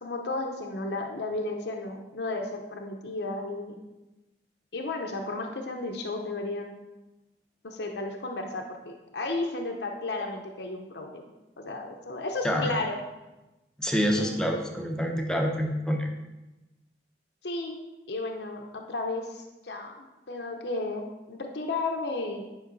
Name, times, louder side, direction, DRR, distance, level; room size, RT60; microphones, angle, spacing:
voice 1, 0.0-3.8 4.7-6.7 7.6-11.2 11.6-13.0 14.1-14.4 17.4-17.8 18.1-22.4, left 2 dB, 70° left, 3 dB, 0.7 m, -33 dB
voice 2, 12.4-12.8 13.8-16.1, equal, 5° left, 2 dB, 0.7 m, -27 dB
10.5 x 5.3 x 4.0 m, 1.0 s
head